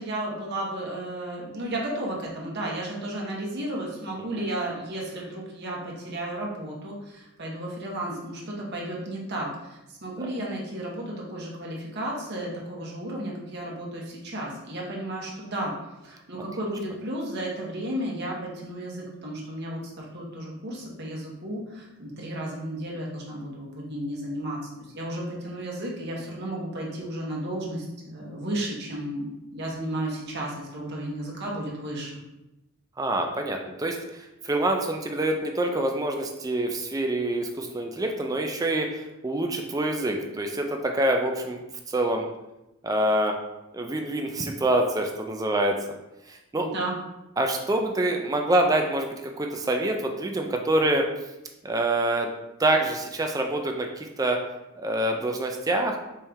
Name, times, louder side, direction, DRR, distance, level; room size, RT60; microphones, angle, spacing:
voice 1, 0.0-15.7 16.0-24.6 24.9-32.1 46.5-47.0, right 1 dB, 50° right, -3 dB, 1.1 m, -33 dB
voice 2, 33.0-41.6 41.9-42.3 42.8-43.4 43.7-45.8 46.3-46.7 47.4-51.1 51.6-52.3 52.6-54.4 54.8-56.0, right 1 dB, 15° right, 3 dB, 0.4 m, -26 dB
4.4 x 3.2 x 3.6 m, 0.94 s
head